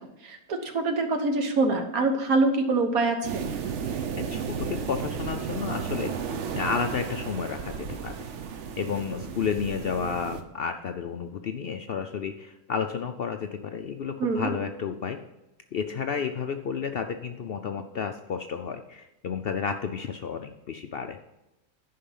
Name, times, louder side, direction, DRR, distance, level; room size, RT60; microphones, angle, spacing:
voice 1, 0.2-3.5 14.2-14.5, right 3 dB, 75° right, 5 dB, 1.6 m, -25 dB
sound 1, 3.2-10.4, right 6 dB, 60° right, 1.0 m, -34 dB
voice 2, 3.8-6.1 6.5-8.1 8.8-15.2 15.7-21.2, left 6 dB, 65° left, 6 dB, 0.6 m, -31 dB
10.5 x 5.6 x 5.5 m, 0.96 s
omnidirectional pair, 1.6 m